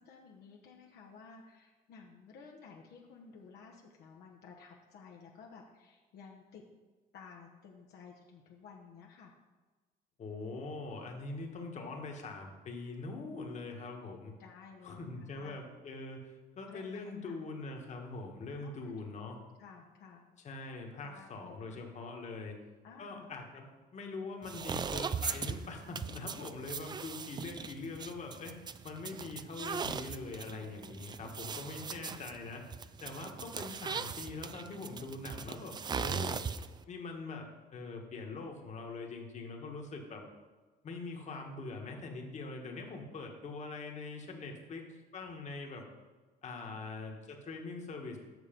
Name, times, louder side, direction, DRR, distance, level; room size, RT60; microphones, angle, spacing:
voice 1, 0.0-6.6 7.1-9.3 14.4-15.6 16.7-17.3 18.5-19.1 19.6-20.2 21.0-21.8 22.8-23.3 46.6-46.8, left 5 dB, 70° left, -1 dB, 1.1 m, -54 dB
voice 2, 10.2-14.3 14.8-19.4 20.4-22.6 23.0-32.6 33.0-36.4 36.9-40.2 40.8-44.8 45.1-45.8 46.4-48.2, left 3 dB, 45° left, 2 dB, 1.6 m, -43 dB
sound 1, 24.4-36.8, right 6 dB, 25° right, 0.4 m, -39 dB
8.1 x 6.5 x 5.2 m, 1.3 s
cardioid pair, 110°, 17 cm